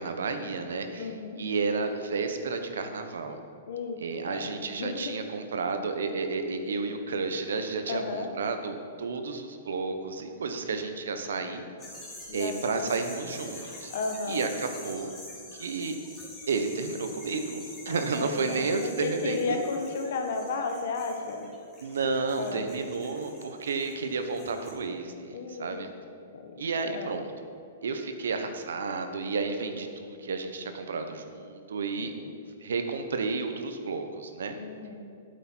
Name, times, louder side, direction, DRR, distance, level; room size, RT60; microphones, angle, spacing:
voice 1, 0.0-1.1 1.4-3.4 4.0-11.7 12.3-13.9 14.3-15.1 15.5-16.0 16.5-19.4 21.8-25.9 26.6-27.3 27.8-32.1 32.6-34.5, right 4 dB, 90° right, 7 dB, 1.2 m, -31 dB
voice 2, 1.0-1.4 3.7-5.1 7.9-8.3 12.3-12.9 13.9-14.5 17.9-21.5 22.3-22.7 25.3-25.9 26.3-27.2 32.0-32.3 34.5-35.0, left 4 dB, 65° left, 4 dB, 1.5 m, -34 dB
sound 1, 11.8-24.7, left 2 dB, 20° left, 2.9 m, -46 dB
12.0 x 8.0 x 4.6 m, 2.4 s
hypercardioid pair, 150°, 0 cm